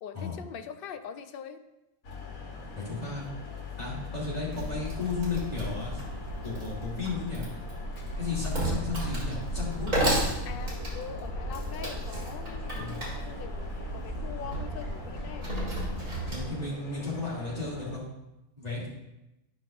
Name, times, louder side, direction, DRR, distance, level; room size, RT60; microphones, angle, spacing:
voice 1, 0.0-1.6 10.5-15.5, left 7 dB, 60° left, 8 dB, 0.6 m, -43 dB
sound 1, 2.0-18.0, left 4 dB, 80° left, 1.6 m, -42 dB
voice 2, 2.7-3.3 3.8-6.0 6.4-7.5 8.2-10.1 12.7-13.1 16.3-18.1 18.6-18.9, left 4 dB, 30° left, -7 dB, 2.5 m, -34 dB
Wood, 4.5-16.5, right 1 dB, 80° right, 3.0 m, -33 dB
11.5 x 5.9 x 2.5 m, 0.95 s
omnidirectional pair, 1.4 m